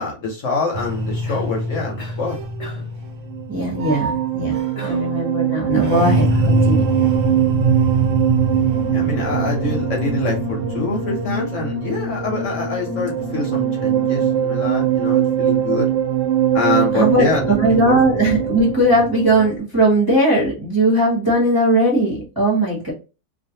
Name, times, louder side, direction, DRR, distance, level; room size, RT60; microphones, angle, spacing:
voice 1, 0.0-2.4 8.9-15.9 16.5-18.0, left 3 dB, 60° left, 0 dB, 1.0 m, -25 dB
sound 1, 0.7-19.6, right 6 dB, 65° right, 0.9 m, -21 dB
Cough, 1.2-1.6 2.0-2.3 2.6-3.0 4.7-5.2 5.8-6.5, left 3 dB, 40° left, 0.6 m, -38 dB
voice 2, 3.5-6.8 16.9-22.9, right 1 dB, 20° right, -5 dB, 0.8 m, -18 dB
2.5 x 2.4 x 2.7 m, 0.31 s
omnidirectional pair, 1.6 m